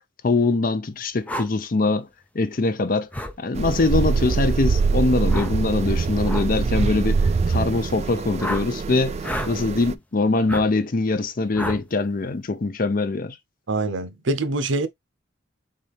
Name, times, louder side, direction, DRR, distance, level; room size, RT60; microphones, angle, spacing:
voice 1, 0.2-2.1 2.3-3.1 3.4-9.2 9.5-13.4, left 3 dB, 50° left, 0.6 m, -23 dB
sound 1, 1.3-1.5 3.1-3.4 5.3-5.6 6.2-6.5 8.4-8.7 9.2-9.5 10.5-10.7 11.6-11.8, left 1 dB, 10° left, 0.6 m, -29 dB
sound 2, 3.6-9.9, right 4 dB, 35° right, 0.3 m, -24 dB
voice 2, 13.7-14.9, right 2 dB, 85° right, 0.7 m, -24 dB
4.3 x 3.7 x 3.4 m
head